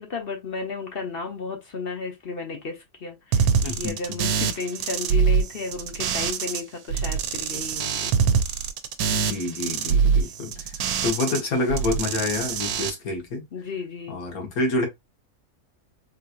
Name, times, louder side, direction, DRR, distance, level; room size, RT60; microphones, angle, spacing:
voice 1, 0.0-3.5 3.8-8.1 10.2-10.5 13.5-14.2, left 4 dB, 50° left, 0.8 m, -33 dB
sound 1, 3.3-6.6 6.9-11.4 11.7-12.9, right 6 dB, 90° right, 1.1 m, -24 dB
voice 2, 3.6-4.2 9.1-10.7 11.0-13.4 14.1-14.9, left 2 dB, 80° left, 1.6 m, -27 dB
3.8 x 2.8 x 2.3 m
omnidirectional pair, 1.5 m